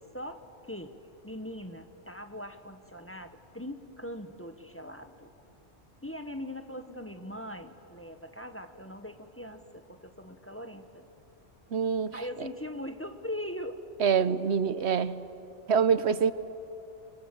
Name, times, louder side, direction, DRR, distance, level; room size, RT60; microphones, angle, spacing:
voice 1, 0.1-1.0 1.2-5.3 6.0-11.0 12.1-13.8, left 1 dB, 10° left, 7 dB, 1.1 m, -41 dB
voice 2, 11.7-12.5 14.0-15.2 15.7-16.3, right 6 dB, 70° right, 14 dB, 1.0 m, -26 dB
29.5 x 25.5 x 7.7 m, 2.9 s
omnidirectional pair, 1.2 m